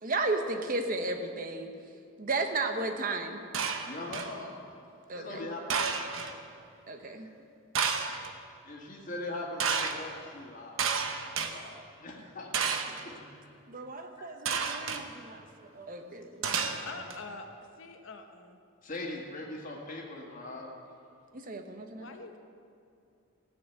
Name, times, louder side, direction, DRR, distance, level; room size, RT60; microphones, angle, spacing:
voice 1, 0.0-1.7 2.2-3.4 5.1-5.5 6.9-7.3 11.4-11.7 13.7-16.9 21.3-22.1, right 3 dB, 40° right, 6 dB, 0.9 m, -34 dB
sound 1, 3.5-4.4 5.7-6.3 7.7-8.3 9.6-10.0 10.8-11.5 12.5-13.0 14.5-15.0 16.4-17.2, right 6 dB, 70° right, 0.9 m, -31 dB
voice 2, 3.8-4.5 5.1-6.1 7.1-7.4 8.6-10.8 11.3-12.5 12.8-13.5 14.1-14.6 18.8-20.7, left 2 dB, 40° left, -2 dB, 1.8 m, -41 dB
voice 3, 16.8-17.5 17.8-18.6 22.0-22.4, left 3 dB, 65° left, 5 dB, 0.9 m, -44 dB
15.5 x 6.4 x 8.1 m, 2.5 s
head